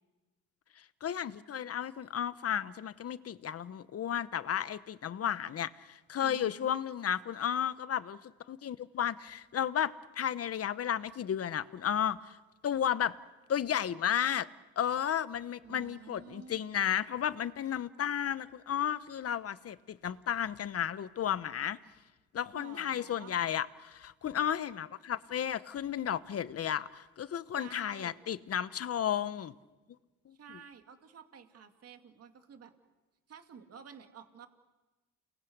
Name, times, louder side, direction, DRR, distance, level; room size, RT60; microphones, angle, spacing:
voice 1, 1.0-8.2 8.5-12.4 12.6-13.2 13.5-14.5 14.8-21.8 22.3-29.5 30.3-30.4, left 9 dB, 50° left, 15 dB, 1.0 m, -33 dB
voice 2, 6.2-6.8 15.6-16.7 22.5-23.4 27.6-28.2 30.4-32.7 33.3-34.5, right 7 dB, 55° right, 6 dB, 2.4 m, -51 dB
29.5 x 21.0 x 8.0 m, 1.2 s
cardioid pair, 90°, 30 cm